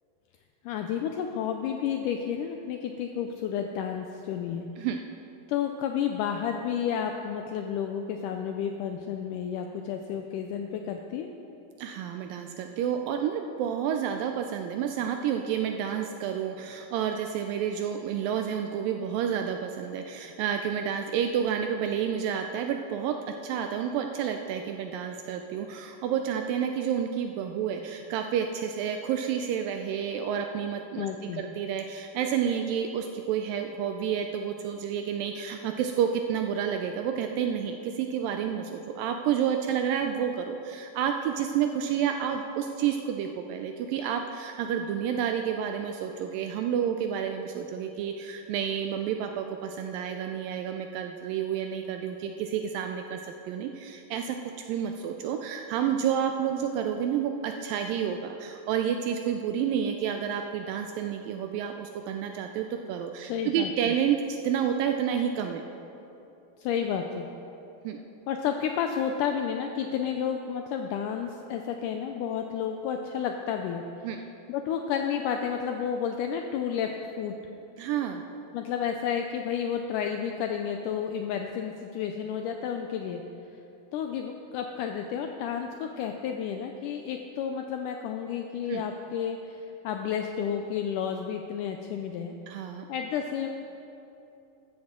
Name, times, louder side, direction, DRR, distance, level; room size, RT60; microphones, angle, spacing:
voice 1, 0.6-4.7 5.5-11.3 31.0-31.4 63.3-63.9 66.6-67.3 68.3-73.8 74.5-76.9 77.2-77.3 78.5-83.2 83.9-92.3 92.9-93.5, left 8 dB, 90° left, 4 dB, 1.8 m, -31 dB
voice 2, 11.8-23.2 23.4-31.1 31.3-54.4 54.7-65.6 67.8-68.0 74.0-74.2 77.8-78.2 88.7-88.8 92.5-92.9, right 8 dB, 80° right, 5 dB, 2.1 m, -30 dB
13.5 x 13.5 x 3.7 m, 2.9 s
omnidirectional pair, 4.3 m